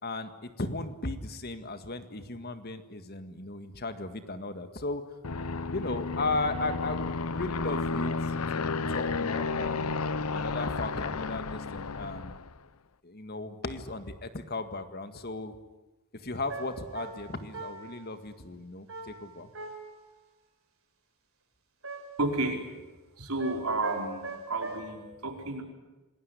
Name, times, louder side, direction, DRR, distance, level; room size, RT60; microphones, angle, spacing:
voice 1, 0.0-5.0 5.7-10.0 10.3-12.3 13.0-15.6 16.1-19.5, left 2 dB, 45° left, 10 dB, 1.9 m, -36 dB
Aircraft, 5.2-12.6, left 4 dB, 80° left, 0.9 m, -32 dB
sound 1, 16.5-18.1 18.9-20.1 21.8-22.4 23.4-24.8, right 3 dB, 65° right, 4.0 m, -41 dB
voice 2, 22.2-22.6 23.2-25.6, right 2 dB, 85° right, 3 dB, 4.9 m, -31 dB
27.0 x 20.0 x 9.9 m, 1.1 s
head